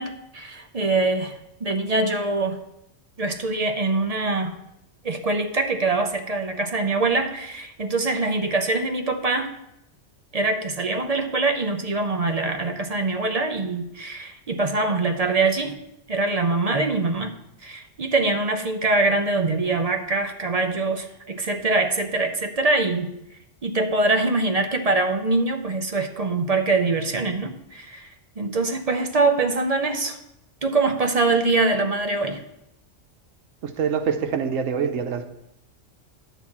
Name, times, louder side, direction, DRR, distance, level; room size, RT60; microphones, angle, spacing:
voice 1, 0.0-2.6 3.2-4.5 5.0-9.5 10.3-15.7 16.1-17.3 17.6-23.1 23.6-28.1 28.4-30.2 30.6-32.4, right 3 dB, 40° right, 6 dB, 0.6 m, -23 dB
voice 2, 33.6-35.3, right 6 dB, 85° right, 8 dB, 1.1 m, -25 dB
10.0 x 4.1 x 7.2 m, 0.83 s
omnidirectional pair, 1.3 m